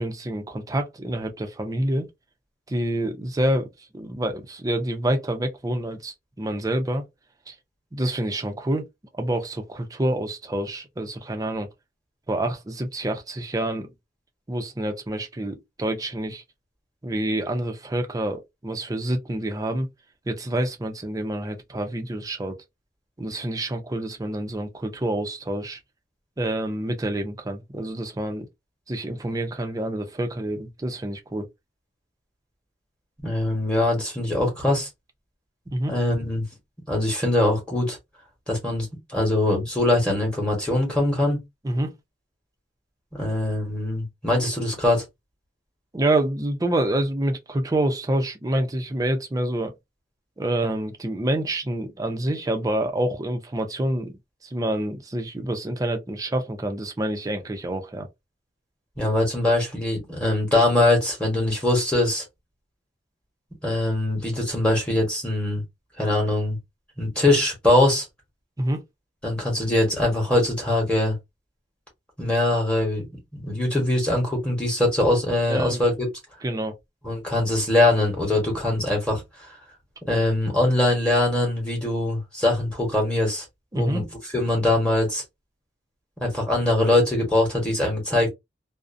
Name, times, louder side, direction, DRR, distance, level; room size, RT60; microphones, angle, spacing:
voice 1, 0.0-2.1 2.7-3.7 3.9-7.1 7.5-7.6 7.9-8.9 9.1-11.7 12.3-13.9 14.5-16.4 17.0-19.9 20.3-22.5 23.2-25.8 26.4-28.5 28.9-31.5 35.7-35.9 41.6-41.9 45.9-49.7 50.4-58.1 68.6-68.8 75.5-75.8 76.4-76.7 83.7-84.0, right 1 dB, 20° right, 0.4 m, -27 dB
voice 2, 33.2-34.9 35.9-36.4 36.9-38.0 38.5-41.4 43.1-45.0 59.0-62.2 63.6-65.6 66.0-66.6 67.0-68.0 69.2-71.2 72.2-76.1 77.0-79.5 80.1-83.4 83.7-84.0 84.3-85.2 86.2-88.3, left 1 dB, 5° left, 1.0 m, -22 dB
2.4 x 2.0 x 2.5 m
head